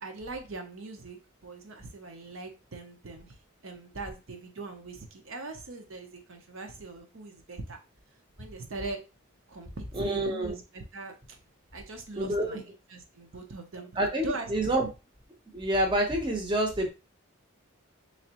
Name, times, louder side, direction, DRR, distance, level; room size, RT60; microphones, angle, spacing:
voice 1, 0.0-3.4 3.6-7.8 8.4-9.0 9.5-11.2 11.7-12.6 12.9-13.9 14.2-14.5, right 3 dB, 65° right, 4 dB, 0.7 m, -41 dB
voice 2, 9.9-10.5 12.2-12.6 13.9-14.9 15.5-16.9, right 1 dB, 20° right, 1 dB, 0.7 m, -27 dB
3.5 x 3.1 x 2.9 m, 0.29 s
head